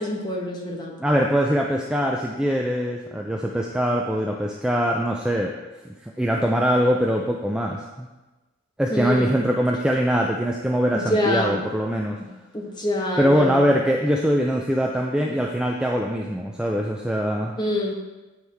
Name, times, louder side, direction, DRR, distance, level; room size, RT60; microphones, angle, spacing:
voice 1, 0.0-1.0 8.9-9.4 10.9-11.6 12.2-12.3 12.5-13.7 15.3-15.4 17.6-17.9, left 1 dB, 20° left, -2 dB, 1.1 m, -26 dB
voice 2, 1.0-5.5 6.0-8.1 8.8-12.2 13.2-17.6, equal, 5° right, 0 dB, 0.3 m, -22 dB
9.0 x 4.7 x 3.4 m, 1.1 s
head